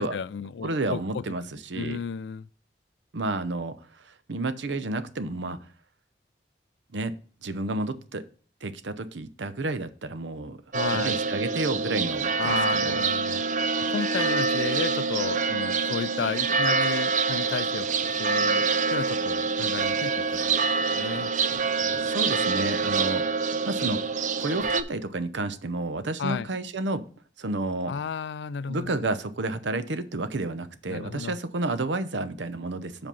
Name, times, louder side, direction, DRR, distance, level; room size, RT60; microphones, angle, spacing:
voice 1, 0.0-1.2 1.8-2.5 10.7-11.2 12.4-13.4 13.9-18.7 18.9-20.5 20.9-21.3 21.7-22.0 26.2-26.5 27.9-29.1 30.9-31.4, left 6 dB, 75° left, 0.4 m, -33 dB
voice 2, 0.6-2.0 3.1-5.6 6.9-7.1 7.4-8.2 8.6-10.6 10.9-13.1 22.0-24.0 24.4-27.1 27.4-27.9 28.7-33.1, right 2 dB, 80° right, 0.8 m, -31 dB
sound 1, 10.7-24.8, right 4 dB, 40° right, 0.5 m, -26 dB
sound 2, 19.8-22.4 22.8-23.3 23.6-25.4, right 1 dB, 25° right, 4.5 m, -53 dB
7.6 x 5.2 x 5.4 m
head